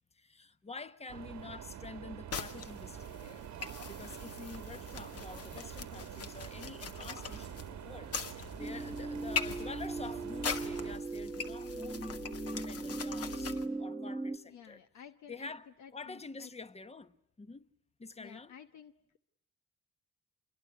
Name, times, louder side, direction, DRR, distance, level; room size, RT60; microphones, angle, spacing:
voice 1, 0.1-12.2 12.5-14.8 15.3-15.7 15.9-17.7 18.0-18.5, left 3 dB, 20° left, 1.2 m, -48 dB
sound 1, 1.1-11.0, right 10 dB, 70° right, 1.4 m, -46 dB
sound 2, 2.3-13.7, left 5 dB, 50° left, 1.8 m, -42 dB
sound 3, 8.6-14.4, right 2 dB, 5° right, 1.2 m, -39 dB
voice 2, 14.5-15.5 15.8-16.5 18.2-18.9, left 8 dB, 70° left, 1.1 m, -53 dB
26.5 x 22.0 x 9.9 m
cardioid pair, 90°, 30 cm